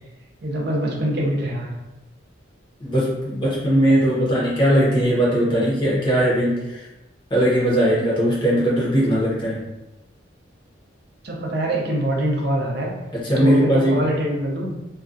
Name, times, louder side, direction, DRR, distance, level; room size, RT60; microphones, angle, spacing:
voice 1, 0.4-1.7 11.2-12.9 13.4-14.7, right 1 dB, 55° right, -1 dB, 0.5 m, -24 dB
voice 2, 2.8-6.8 7.3-9.6 13.1-14.1, equal, 25° left, -6 dB, 0.7 m, -19 dB
2.3 x 2.2 x 2.5 m, 0.97 s
head